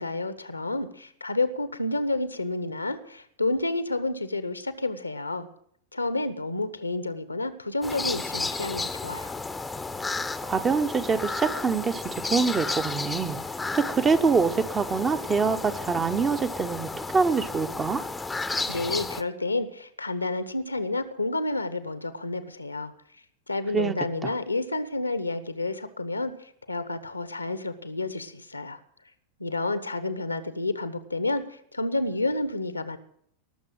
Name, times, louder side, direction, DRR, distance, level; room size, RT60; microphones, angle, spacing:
voice 1, 0.0-5.5 5.9-9.3 18.7-22.9 23.5-28.8 29.4-33.0, left 2 dB, 85° left, 13 dB, 1.1 m, -30 dB
sound 1, 7.8-19.2, left 3 dB, 10° left, 0.8 m, -33 dB
voice 2, 10.4-13.4 13.7-18.0 23.7-23.9 24.2-24.3, right 5 dB, 20° right, 10 dB, 0.9 m, -25 dB
19.0 x 6.9 x 8.8 m, 0.68 s
figure-of-eight pair, 90°, 0 cm